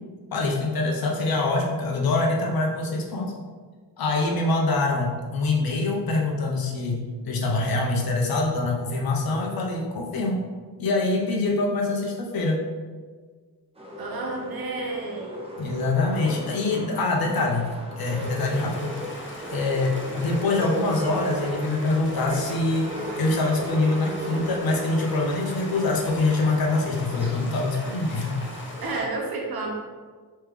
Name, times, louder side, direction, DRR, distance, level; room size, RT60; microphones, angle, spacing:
voice 1, 0.3-3.4 4.0-10.4 10.8-12.6 15.6-19.2 19.5-28.4, left 2 dB, 65° left, -1 dB, 0.9 m, -25 dB
sound 1, 13.8-29.1, right 1 dB, 15° right, 0.9 m, -36 dB
voice 2, 14.0-15.4 28.8-29.7, right 3 dB, 65° right, -1 dB, 1.0 m, -31 dB
Stream, 18.2-29.0, left 1 dB, 30° left, 0.7 m, -41 dB
3.4 x 3.2 x 3.2 m, 1.5 s
cardioid pair, 70°, 40 cm